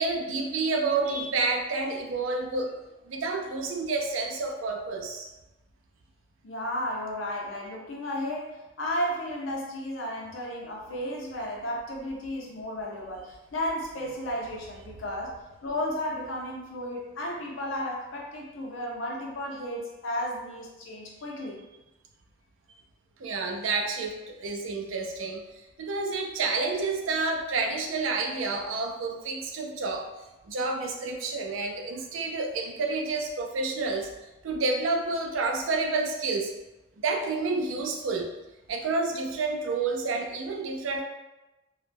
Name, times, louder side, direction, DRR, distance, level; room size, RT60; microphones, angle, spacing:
voice 1, 0.0-2.8 3.1-5.3 23.2-25.4 25.8-30.1 30.5-34.1 34.4-36.5 37.0-38.3 38.7-41.0, right 3 dB, 85° right, 2 dB, 0.4 m, -29 dB
voice 2, 6.4-15.4 15.6-21.6, left 1 dB, 80° left, -1 dB, 0.6 m, -33 dB
2.2 x 2.0 x 3.3 m, 1.0 s
head